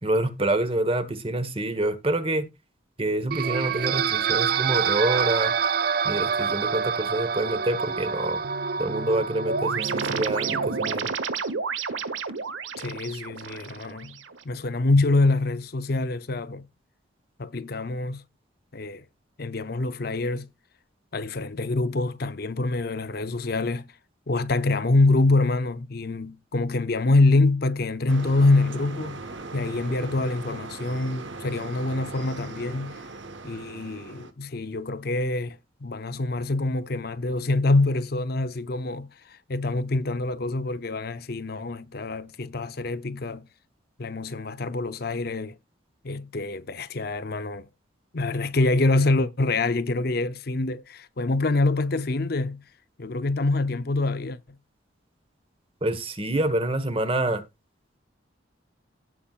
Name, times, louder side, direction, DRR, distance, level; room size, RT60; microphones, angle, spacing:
voice 1, 0.0-2.5 3.0-5.5 6.0-8.4 8.8-11.1 55.8-57.4, right 1 dB, 30° right, 1.4 m, -27 dB
sound 1, 3.3-10.9, right 6 dB, 50° right, 0.4 m, -27 dB
sound 2, 9.5-14.4, right 5 dB, 90° right, 1.2 m, -31 dB
voice 2, 12.8-14.2 14.4-16.6 17.4-18.2 18.7-19.0 19.4-20.5 21.1-23.9 24.3-29.2 29.5-33.1 33.4-43.5 44.0-45.6 46.0-47.7 48.1-52.6 53.0-54.4, left 2 dB, 55° left, 0.7 m, -25 dB
sound 3, 28.1-34.3, right 3 dB, 75° right, 1.3 m, -39 dB
17.0 x 5.8 x 2.5 m
head